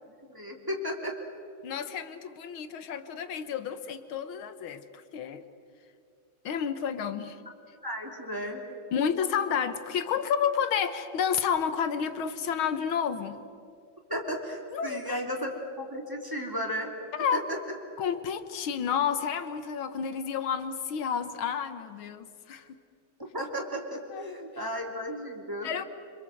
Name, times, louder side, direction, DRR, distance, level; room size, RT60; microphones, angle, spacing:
voice 1, 0.3-1.2 7.8-8.7 14.1-15.5 15.8-16.9 17.2-17.4 23.2-25.7, equal, 10° right, 1 dB, 3.2 m, -34 dB
voice 2, 1.6-5.5 6.4-7.4 8.9-13.4 14.7-15.2 17.1-17.4 18.0-22.8 24.1-24.4 25.6-25.8, left 7 dB, 85° left, 10 dB, 2.0 m, -30 dB
27.0 x 26.0 x 7.8 m, 2.4 s
omnidirectional pair, 2.2 m